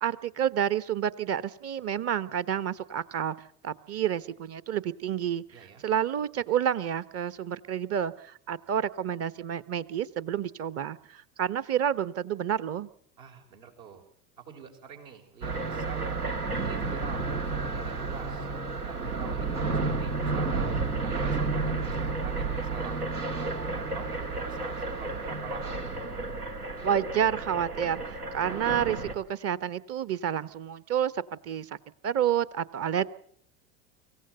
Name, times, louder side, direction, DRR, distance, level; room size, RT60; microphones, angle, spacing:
voice 1, 0.0-3.3 3.6-12.9 26.8-31.7 32.0-33.1, right 9 dB, 35° right, 17 dB, 1.0 m, -29 dB
voice 2, 5.5-5.8 13.2-14.0 14.4-18.5 18.8-20.7 21.0-25.8, right 7 dB, 65° right, 3 dB, 5.2 m, -46 dB
sound 1, 15.4-29.1, right 3 dB, 85° right, 2.3 m, -31 dB
25.0 x 16.0 x 7.9 m, 0.63 s
figure-of-eight pair, 80°, 44 cm